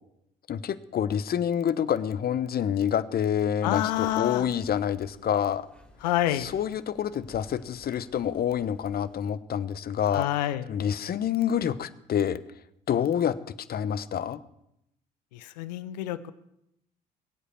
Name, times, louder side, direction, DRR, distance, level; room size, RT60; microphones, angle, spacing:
voice 1, 0.5-5.7 6.3-10.3 10.7-12.4 12.9-14.4, left 9 dB, 45° left, 16 dB, 1.0 m, -27 dB
voice 2, 3.6-4.4 6.0-6.5 10.1-10.6 15.3-16.3, left 13 dB, 80° left, 15 dB, 0.9 m, -28 dB
Breathing, 3.7-9.4, left 1 dB, 5° left, 4.3 m, -54 dB
22.5 x 8.3 x 7.2 m, 0.81 s
hypercardioid pair, 55°, 21 cm